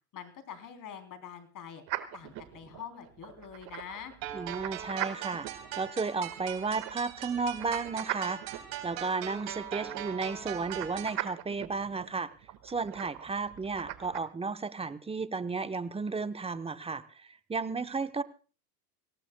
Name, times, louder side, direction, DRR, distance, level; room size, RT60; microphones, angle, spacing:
voice 1, 0.1-1.8 2.1-4.1, left 8 dB, 40° left, 7 dB, 3.4 m, -45 dB
sound 1, 1.9-14.2, right 14 dB, 50° right, 1.6 m, -42 dB
sound 2, 4.2-11.2, right 11 dB, 75° right, 3.8 m, -40 dB
voice 2, 4.3-5.5 5.7-12.3 12.6-18.2, right 4 dB, 10° right, 12 dB, 0.8 m, -33 dB
25.0 x 18.0 x 2.2 m, 0.36 s
supercardioid pair, 100°, 48 cm